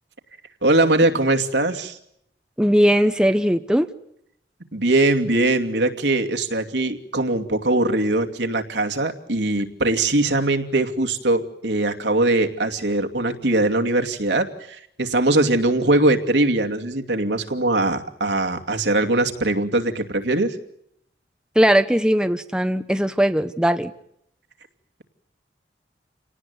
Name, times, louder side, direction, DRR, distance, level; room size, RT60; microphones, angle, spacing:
voice 1, 0.6-2.0 4.7-20.6, right 2 dB, 80° right, 4 dB, 2.6 m, -21 dB
voice 2, 2.6-3.9 21.5-23.9, equal, 5° right, 9 dB, 1.0 m, -19 dB
28.5 x 18.5 x 9.6 m, 0.74 s
head